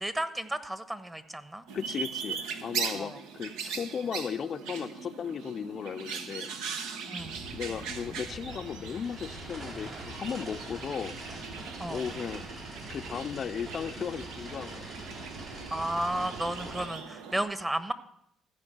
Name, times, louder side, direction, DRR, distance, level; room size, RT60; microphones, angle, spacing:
voice 1, 0.0-1.6 2.9-3.2 7.0-7.4 11.8-12.0 15.7-17.9, right 1 dB, 15° right, 11 dB, 1.2 m, -33 dB
voice 2, 1.7-6.5 7.5-11.2 11.9-12.5 12.9-15.0, left 7 dB, 50° left, 10 dB, 0.5 m, -36 dB
sound 1, 1.7-17.4, right 6 dB, 80° right, 1.0 m, -40 dB
sound 2, 7.2-16.9, right 2 dB, 60° right, 4.1 m, -43 dB
14.5 x 5.2 x 7.9 m, 0.74 s
hypercardioid pair, 60°, 0 cm